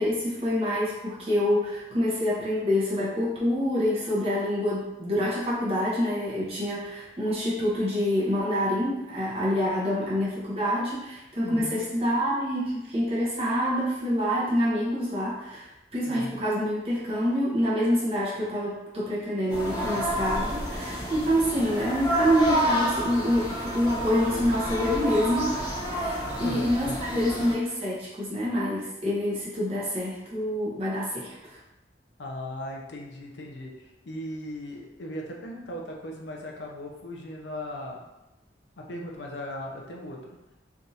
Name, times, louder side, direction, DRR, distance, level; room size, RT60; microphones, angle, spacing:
voice 1, 0.0-31.6, equal, 30° right, -7 dB, 0.9 m, -27 dB
voice 2, 11.4-11.8 16.1-16.4 26.2-27.0 32.2-33.7 34.1-38.0 38.8-40.4, left 1 dB, 85° left, 0 dB, 0.6 m, -38 dB
sound 1, 19.5-27.5, equal, 20° left, 0.6 m, -29 dB
3.4 x 2.6 x 2.7 m, 0.96 s
head